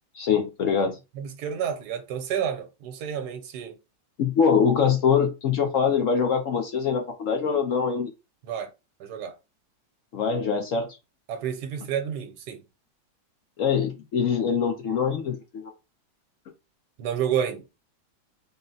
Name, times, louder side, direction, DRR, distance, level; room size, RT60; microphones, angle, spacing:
voice 1, 0.1-1.0 4.2-8.1 10.1-10.9 13.6-15.7, left 6 dB, 60° left, 0.8 m, -23 dB
voice 2, 1.2-3.8 8.4-8.7 9.0-9.3 11.3-12.6 17.0-17.7, right 8 dB, 70° right, 1.3 m, -30 dB
3.9 x 2.2 x 3.9 m
omnidirectional pair, 1.9 m